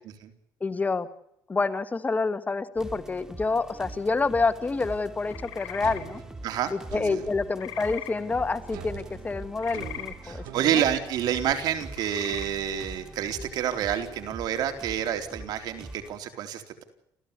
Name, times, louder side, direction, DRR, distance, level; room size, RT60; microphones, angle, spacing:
voice 1, 0.6-1.1 1.5-6.2 6.7-10.4, left 3 dB, 20° left, 12 dB, 1.7 m, -28 dB
sound 1, 2.8-16.2, right 2 dB, 10° right, 2.8 m, -43 dB
sound 2, 5.2-6.0 7.6-8.1 9.6-10.1 11.9-12.5, left 13 dB, 75° left, 4.8 m, -40 dB
sound 3, 5.8-7.4 8.7-11.5, right 11 dB, 90° right, 2.3 m, -43 dB
voice 2, 10.2-16.8, right 10 dB, 70° right, 7 dB, 3.8 m, -28 dB
28.5 x 15.5 x 8.4 m, 0.77 s
cardioid pair, 110°, 7 cm